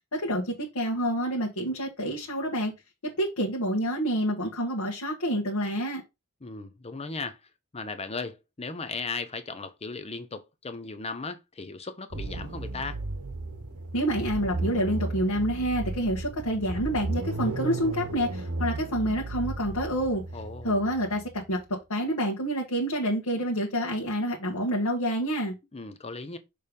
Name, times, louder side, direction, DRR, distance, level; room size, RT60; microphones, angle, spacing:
voice 1, 0.1-2.7 3.0-6.0 13.9-20.2 20.6-21.6 21.9-25.5, equal, 85° left, 1.6 m, -28 dB
voice 2, 6.4-13.0 20.3-20.7 25.7-26.4, left 4 dB, 30° left, 0.7 m, -37 dB
sound 1, 12.1-21.5, right 2 dB, 80° right, 1.1 m, -34 dB
6.7 x 3.3 x 5.2 m
head